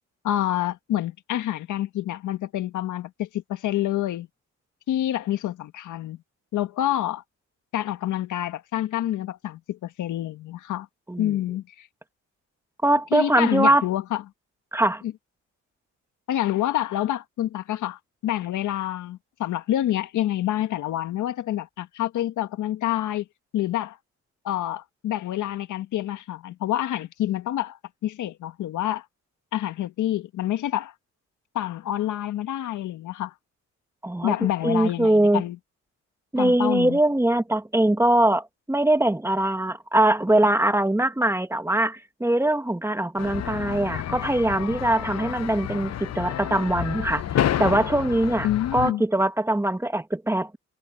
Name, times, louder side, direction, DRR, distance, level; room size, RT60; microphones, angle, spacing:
voice 1, 0.2-4.3 4.9-6.2 6.5-7.2 7.7-10.9 11.2-11.9 13.1-14.2 15.0-15.1 16.3-23.3 23.5-24.0 24.4-29.0 29.5-30.9 31.5-33.3 34.2-35.6 36.4-37.0 48.4-49.0, left 13 dB, 80° left, 1.6 m, -27 dB
voice 2, 12.8-13.8 14.7-15.0 34.0-34.3 34.6-35.4 36.3-47.2 47.6-50.6, right 1 dB, 10° right, 1.8 m, -22 dB
sound 1, 43.2-48.9, left 11 dB, 60° left, 0.9 m, -29 dB
cardioid pair, 90°, 30 cm